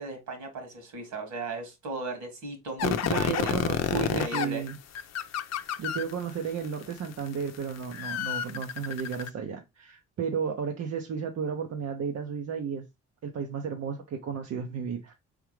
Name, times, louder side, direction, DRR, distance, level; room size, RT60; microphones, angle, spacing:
voice 1, 0.0-4.6, right 3 dB, 75° right, 2.1 m, -37 dB
sound 1, 2.8-6.3 6.8-9.3, left 10 dB, 60° left, 0.6 m, -29 dB
voice 2, 2.8-4.8 5.6-12.8 13.2-15.1, right 6 dB, 55° right, 0.7 m, -33 dB
4.6 x 3.6 x 3.1 m
cardioid pair, 90°, 30 cm